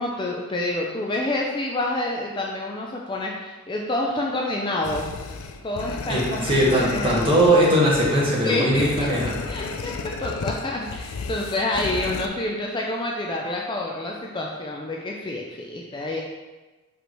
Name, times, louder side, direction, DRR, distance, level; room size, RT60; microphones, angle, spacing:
voice 1, 0.0-5.2 5.6-7.4 8.4-9.1 9.5-16.2, left 2 dB, 20° left, -1 dB, 0.4 m, -28 dB
sound 1, 4.8-12.3, left 4 dB, 75° left, 0.5 m, -33 dB
voice 2, 6.1-9.4, right 1 dB, 25° right, -6 dB, 1.7 m, -20 dB
6.1 x 5.1 x 3.1 m, 1.2 s
head